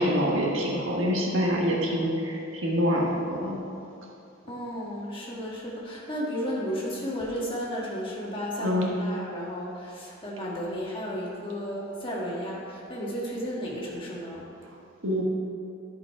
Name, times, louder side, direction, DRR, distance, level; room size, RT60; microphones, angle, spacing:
voice 1, 0.0-3.6 8.6-8.9 15.0-15.2, equal, 75° right, -2 dB, 1.4 m, -26 dB
voice 2, 4.5-14.5, equal, 25° left, -4 dB, 1.6 m, -33 dB
11.0 x 5.0 x 4.7 m, 2.6 s
head